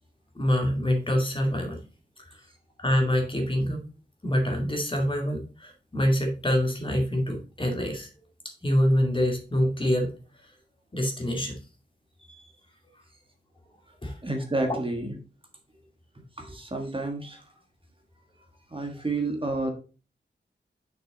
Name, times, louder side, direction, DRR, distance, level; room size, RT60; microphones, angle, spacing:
voice 1, 0.3-1.8 2.2-2.4 2.8-3.8 4.2-8.1 8.6-10.2 10.9-11.6 14.0-14.2 14.7-14.8, equal, 25° left, 2 dB, 2.1 m, -25 dB
voice 2, 14.2-15.2 16.4-17.4 18.7-19.7, right 2 dB, 30° right, 3 dB, 1.4 m, -30 dB
6.2 x 6.0 x 3.9 m, 0.35 s
wide cardioid pair, 85°, 19 cm